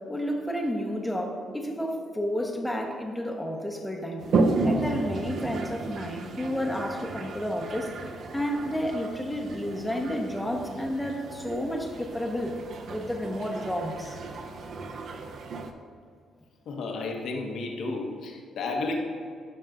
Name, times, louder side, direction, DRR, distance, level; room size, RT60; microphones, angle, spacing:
voice 1, 0.1-4.2 4.6-7.9 8.3-12.6 12.9-14.2, equal, 5° left, 1 dB, 1.0 m, -31 dB
Toilet flush, 4.2-15.7, right 3 dB, 60° right, 0.6 m, -33 dB
voice 2, 16.7-19.0, left 3 dB, 70° left, 2 dB, 1.0 m, -32 dB
11.5 x 5.5 x 2.5 m, 2.2 s
cardioid pair, 90°, 0 cm